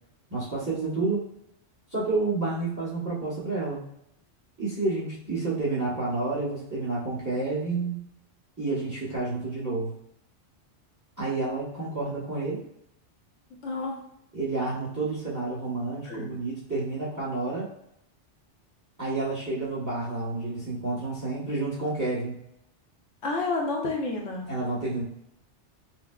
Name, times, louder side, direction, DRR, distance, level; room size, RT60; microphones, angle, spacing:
voice 1, 0.3-1.2 1.9-3.8 4.6-8.0 8.6-9.9 11.2-12.6 14.3-17.7 19.0-22.4 24.5-25.0, right 3 dB, 15° right, -7 dB, 1.1 m, -29 dB
voice 2, 13.6-14.0 16.0-16.3 23.2-24.5, left 3 dB, 80° left, 0 dB, 1.1 m, -30 dB
5.6 x 2.1 x 2.3 m, 0.76 s
omnidirectional pair, 1.2 m